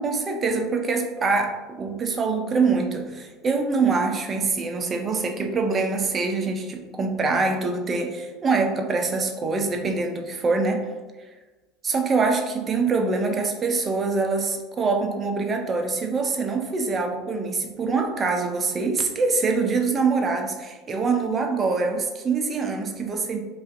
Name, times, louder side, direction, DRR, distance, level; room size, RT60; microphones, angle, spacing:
voice 1, 0.0-10.9 11.8-23.4, right 4 dB, 30° right, 4 dB, 0.4 m, -24 dB
2.5 x 2.4 x 2.3 m, 1.2 s
hypercardioid pair, 80°, 0 cm